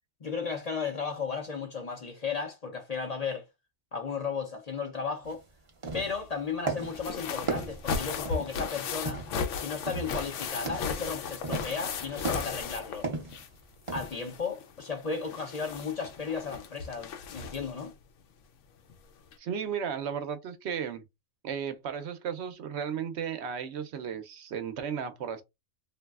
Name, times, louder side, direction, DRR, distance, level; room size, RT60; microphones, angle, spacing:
voice 1, 0.2-3.4 3.9-5.4 5.9-9.3 9.6-13.1 13.9-17.9, left 5 dB, 45° left, 0.6 m, -34 dB
sound 1, 5.2-5.4 5.7-6.3 6.7-7.1 7.5-8.6 9.1-9.5 9.9-10.2 10.5-11.0 11.4-11.8 12.2-12.7 13.0-13.4 13.9-14.1, right 3 dB, 35° right, 0.6 m, -35 dB
sound 2, 6.8-13.6 13.9-17.8 18.9-19.0 19.3-19.4, left 5 dB, 80° left, 0.9 m, -36 dB
voice 2, 19.4-21.0 21.4-25.4, right 7 dB, 70° right, 0.8 m, -34 dB
3.0 x 2.6 x 2.3 m
omnidirectional pair, 1.3 m